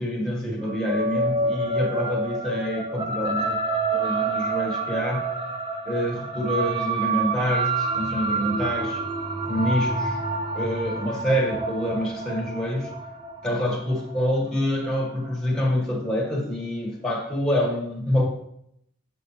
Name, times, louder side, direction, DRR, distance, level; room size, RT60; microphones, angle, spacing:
voice 1, 0.0-3.6 3.9-5.3 5.9-9.0 9.5-10.2 10.5-12.9 13.4-18.3, equal, 5° left, -4 dB, 1.7 m, -26 dB
sound 1, 0.6-15.3, right 3 dB, 25° right, 0.8 m, -28 dB
7.9 x 6.3 x 3.3 m, 0.74 s
head